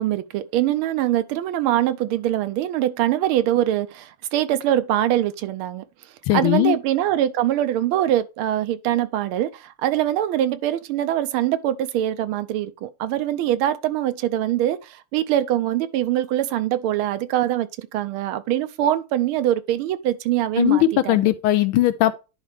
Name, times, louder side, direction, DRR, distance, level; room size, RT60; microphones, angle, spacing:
voice 1, 0.0-5.8 6.3-21.3, right 12 dB, 80° right, 1.4 m, -23 dB
voice 2, 6.3-6.8 20.6-22.2, left 13 dB, 80° left, 1.4 m, -19 dB
10.5 x 4.5 x 3.4 m
omnidirectional pair, 2.4 m